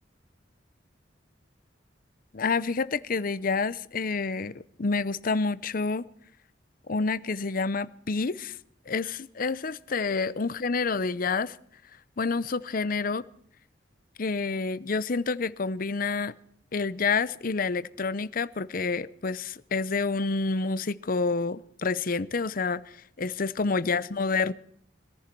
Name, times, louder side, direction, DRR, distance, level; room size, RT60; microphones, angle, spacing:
voice 1, 2.3-6.1 6.9-8.6 8.9-11.6 12.2-13.2 14.2-16.3 16.7-22.8 23.2-24.5, left 4 dB, 50° left, 0.7 m, -28 dB
22.0 x 14.5 x 4.6 m
head